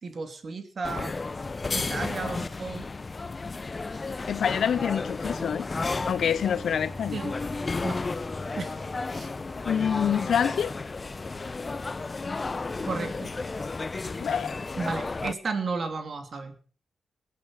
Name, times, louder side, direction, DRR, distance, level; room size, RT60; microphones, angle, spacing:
voice 1, 0.0-1.2 1.7-2.9 7.1-7.3 7.8-8.0 8.6-8.7 9.1-9.3 12.8-13.3 14.8-16.6, right 4 dB, 60° right, 2.8 m, -33 dB
sound 1, 0.8-15.3, left 3 dB, 40° left, 0.7 m, -33 dB
voice 2, 4.3-5.7 6.1-7.2 9.7-10.7 14.2-14.5, left 8 dB, 75° left, 0.6 m, -26 dB
sound 2, 6.4-13.9, left 1 dB, 20° right, 5.0 m, -47 dB
21.0 x 8.6 x 4.7 m
cardioid pair, 55°, 0 cm